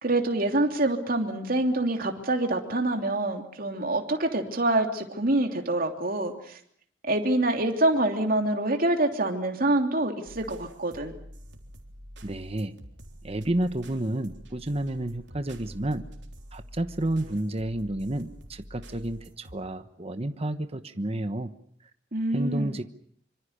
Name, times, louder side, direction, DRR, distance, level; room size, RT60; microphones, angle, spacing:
voice 1, 0.0-6.6 7.0-11.1 22.1-22.7, right 2 dB, 50° right, 4 dB, 3.1 m, -26 dB
sound 1, 10.3-19.6, equal, 65° right, 3.7 m, -47 dB
voice 2, 12.2-12.8 13.2-16.0 16.5-21.5 22.3-22.8, right 1 dB, 30° right, 9 dB, 1.1 m, -30 dB
25.5 x 25.0 x 6.7 m, 0.62 s
head